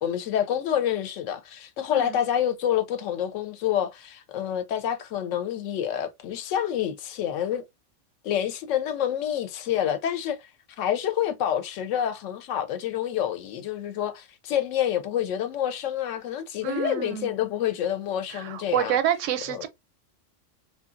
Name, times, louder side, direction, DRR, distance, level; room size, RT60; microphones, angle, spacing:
voice 1, 0.0-7.6 8.2-10.4 10.8-19.0 19.5-19.7, left 10 dB, 85° left, 0.9 m, -28 dB
voice 2, 16.6-17.3 18.3-19.7, right 10 dB, 85° right, 0.9 m, -28 dB
2.7 x 2.3 x 2.4 m
omnidirectional pair, 1.3 m